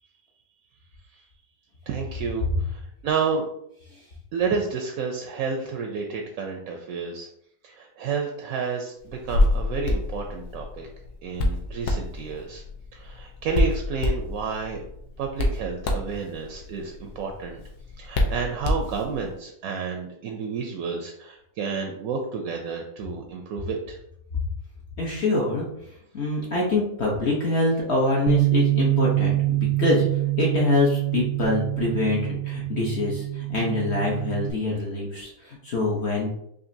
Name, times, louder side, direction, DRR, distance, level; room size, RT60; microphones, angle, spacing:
voice 1, 1.9-3.4 4.3-7.3 7.6-10.9 11.2-12.6 12.9-14.8 15.2-17.6 18.0-24.0, right 5 dB, 70° right, 2 dB, 0.8 m, -30 dB
Hands, 9.1-19.3, left 1 dB, 70° left, 1.2 m, -28 dB
voice 2, 25.0-25.7 26.1-30.1 30.4-36.3, left 2 dB, 55° left, -3 dB, 0.8 m, -25 dB
Bass guitar, 28.3-34.5, right 18 dB, 85° right, 1.3 m, -25 dB
5.0 x 2.6 x 2.6 m, 0.75 s
omnidirectional pair, 1.8 m